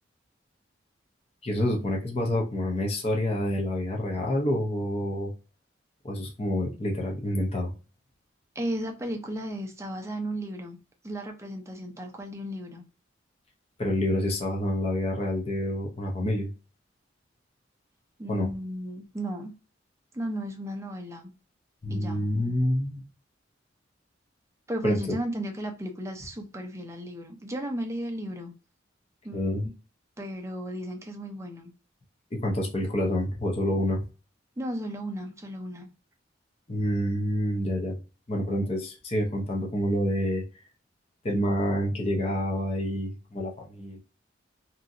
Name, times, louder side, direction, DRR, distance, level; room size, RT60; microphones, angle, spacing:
voice 1, 1.4-5.3 6.0-7.7 13.8-16.5 18.3-18.5 21.8-23.0 24.8-25.0 29.3-29.7 32.4-34.1 36.7-38.0 38.3-40.4 41.2-44.0, left 1 dB, 30° left, 0.7 m, -27 dB
voice 2, 8.5-10.8 11.0-12.8 18.2-19.5 20.1-21.3 21.9-22.3 24.7-28.5 29.2-29.7 30.2-31.7 34.6-35.9, equal, 15° right, 0.5 m, -35 dB
2.8 x 2.6 x 2.5 m
head